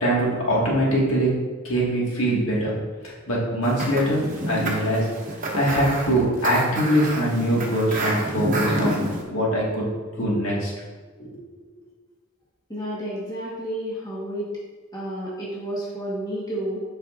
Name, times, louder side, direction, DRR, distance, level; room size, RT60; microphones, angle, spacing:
voice 1, 0.0-1.3 1.6-2.7 3.3-5.0 5.6-9.0 9.3-9.9 10.2-10.7 11.2-11.3, right 1 dB, 70° left, -5 dB, 1.8 m, -22 dB
sound 1, 3.6-9.2, right 1 dB, 40° right, 0.9 m, -28 dB
voice 2, 12.7-14.5 14.9-16.8, right 1 dB, 20° left, -6 dB, 1.3 m, -31 dB
7.7 x 5.3 x 2.5 m, 1.4 s
head